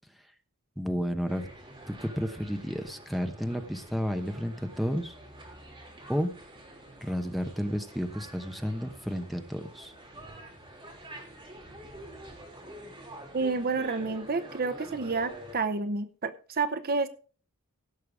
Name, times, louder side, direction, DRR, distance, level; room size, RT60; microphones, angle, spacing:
voice 1, 0.8-1.5 1.9-5.1 6.1-6.3 7.0-9.9, equal, ahead, 6 dB, 1.0 m, -32 dB
sound 1, 1.3-15.5, right 1 dB, 20° right, 3.5 m, -47 dB
voice 2, 13.3-17.1, right 4 dB, 45° right, 10 dB, 0.8 m, -29 dB
16.5 x 6.6 x 4.8 m, 0.40 s
head